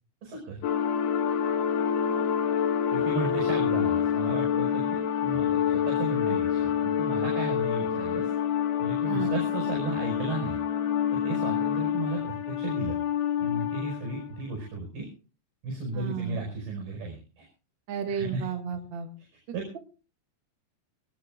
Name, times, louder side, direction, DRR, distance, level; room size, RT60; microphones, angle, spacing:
voice 1, 0.2-0.6 2.9-8.3 8.8-10.6 11.2-13.0 13.4-15.1 15.6-17.5 18.1-18.4 19.5-19.6, right 3 dB, 60° right, 1 dB, 7.5 m, -35 dB
sound 1, 0.6-14.3, left 8 dB, 65° left, 3.2 m, -27 dB
voice 2, 9.1-9.4 15.9-16.4 17.9-19.1, right 7 dB, 45° right, 4 dB, 1.6 m, -33 dB
22.0 x 18.5 x 2.5 m, 0.34 s
omnidirectional pair, 5.3 m